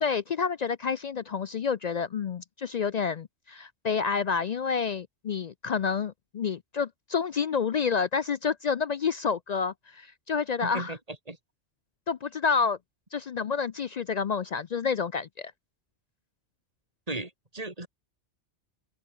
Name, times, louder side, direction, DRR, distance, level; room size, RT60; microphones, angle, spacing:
voice 1, 0.0-10.9 12.1-12.8 13.1-15.5, left 6 dB, 55° left, 0.5 m, -29 dB
voice 2, 10.6-11.0 11.3-11.4 17.1-17.9, right 2 dB, 35° right, 3.5 m, -35 dB
open air
omnidirectional pair, 1.1 m